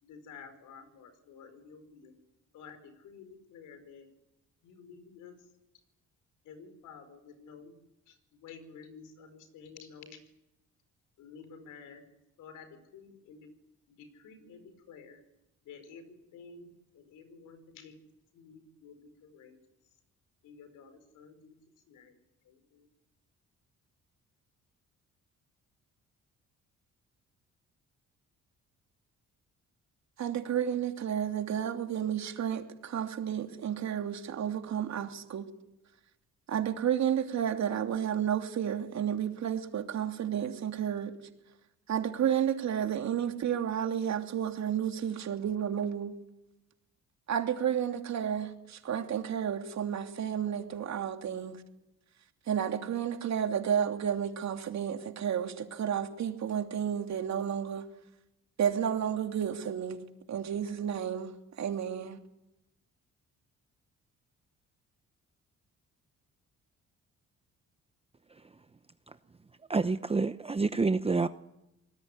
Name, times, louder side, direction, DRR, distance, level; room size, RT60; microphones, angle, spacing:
voice 1, 0.0-2.1 2.5-4.1 4.6-5.4 6.4-7.7 8.1-10.2 11.2-12.0 12.4-13.5 13.9-15.2 15.6-17.9 18.3-19.6 20.4-21.6 21.9-22.2 22.4-22.9, left 5 dB, 90° left, 5.0 m, -51 dB
voice 2, 30.2-35.4 36.5-41.1 41.9-46.1 47.3-51.6 52.5-57.8 58.6-60.0 60.3-61.3 61.6-62.2, right 9 dB, 65° right, 3.0 m, -31 dB
voice 3, 69.7-71.3, right 4 dB, 20° right, 0.9 m, -28 dB
26.0 x 19.5 x 9.7 m
cardioid pair, 90°, 30 cm